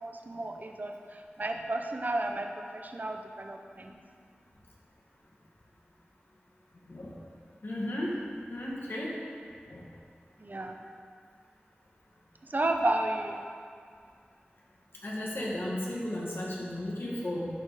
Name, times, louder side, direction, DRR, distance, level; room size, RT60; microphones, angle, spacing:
voice 1, 0.0-3.9 10.4-10.8 12.5-13.6, right 2 dB, 50° right, 3 dB, 0.7 m, -32 dB
voice 2, 7.6-8.1 8.5-9.1 9.7-9.9 15.0-17.5, left 1 dB, 70° left, -5 dB, 2.0 m, -34 dB
11.5 x 4.4 x 5.0 m, 2.1 s
wide cardioid pair, 45°, 4 cm